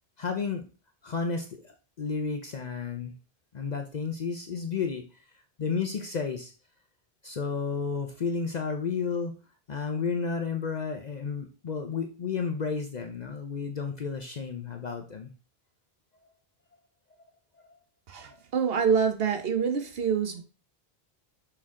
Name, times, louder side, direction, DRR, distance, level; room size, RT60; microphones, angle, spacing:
voice 1, 0.2-0.6 1.0-3.1 3.5-5.2 5.6-6.5 7.2-9.4 9.7-15.3 16.2-16.3 17.6-17.7 18.2-18.4, left 5 dB, 50° left, 0.7 m, -32 dB
voice 2, 18.1-20.4, right 6 dB, 70° right, 1.1 m, -26 dB
6.3 x 4.4 x 3.7 m
omnidirectional pair, 1.0 m